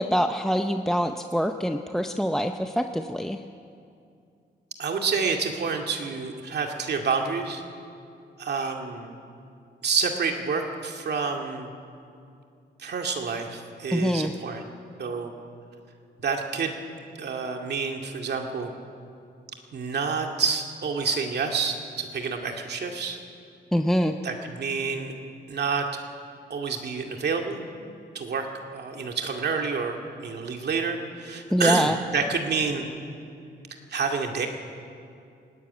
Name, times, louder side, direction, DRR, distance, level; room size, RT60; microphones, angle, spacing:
voice 1, 0.0-3.4 13.9-14.3 23.7-24.1 31.5-32.0, equal, ahead, 6 dB, 0.6 m, -24 dB
voice 2, 4.8-7.6 8.4-9.1 9.8-11.7 12.8-14.7 15.0-15.3 16.2-16.7 17.2-18.7 19.7-23.2 24.2-25.1 25.5-25.9 26.5-27.6 28.1-32.9 33.9-34.5, right 5 dB, 60° right, 3 dB, 2.2 m, -28 dB
19.0 x 17.5 x 9.7 m, 2.5 s
wide cardioid pair, 120°, 19 cm